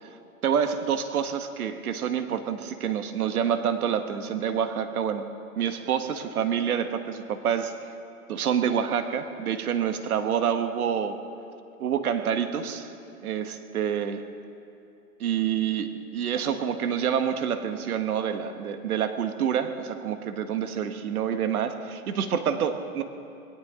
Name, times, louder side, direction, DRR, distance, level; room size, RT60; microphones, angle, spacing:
voice 1, 0.4-5.3 5.6-7.8 8.3-11.2 11.8-12.9 13.2-14.3 15.2-23.0, right 8 dB, 75° right, 8 dB, 1.5 m, -27 dB
20.5 x 18.0 x 3.8 m, 2.9 s
hypercardioid pair, 145°, 44 cm